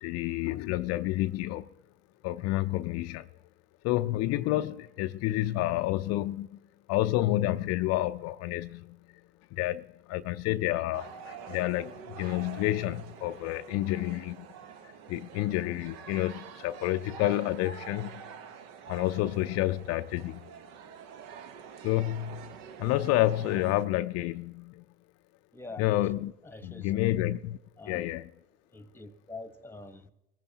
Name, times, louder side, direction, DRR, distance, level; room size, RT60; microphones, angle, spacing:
voice 1, 0.0-1.7 2.2-3.3 3.8-6.6 6.9-9.0 9.5-14.5 14.8-18.2 18.9-20.5 21.8-22.5 22.8-24.8 25.8-26.3 26.6-27.6 27.9-28.3, left 15 dB, 50° left, 0.5 m, -29 dB
sound 1, 10.9-23.9, right 8 dB, 65° right, 1.1 m, -46 dB
voice 2, 25.5-25.9 26.4-27.2 27.8-28.1 28.7-30.1, left 2 dB, 5° left, 1.1 m, -45 dB
23.0 x 15.0 x 2.8 m
hypercardioid pair, 75°, 31 cm